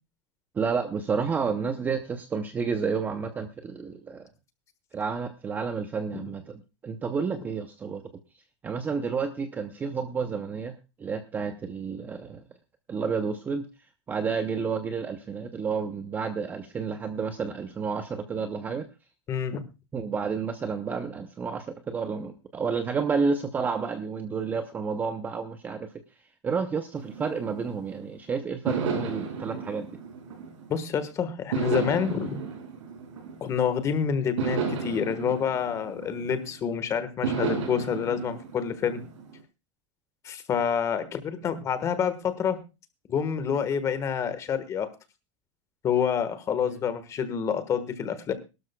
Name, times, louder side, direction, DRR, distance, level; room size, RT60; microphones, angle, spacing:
voice 1, 0.6-4.3 4.9-8.0 8.6-12.4 12.9-13.7 14.1-18.8 19.9-25.9 26.4-29.9 46.7-46.8, right 5 dB, 10° right, 8 dB, 0.6 m, -30 dB
voice 2, 19.3-19.6 30.7-32.5 33.4-39.0 40.2-42.6 43.1-44.9 45.8-48.3, left 7 dB, 20° left, 11 dB, 1.4 m, -28 dB
sound 1, 26.9-28.1 28.7-30.9 31.5-33.8 34.4-36.6 37.2-39.4, right 6 dB, 85° right, 5.4 m, -33 dB
21.5 x 12.5 x 2.2 m, 0.28 s
supercardioid pair, 170°, 15 cm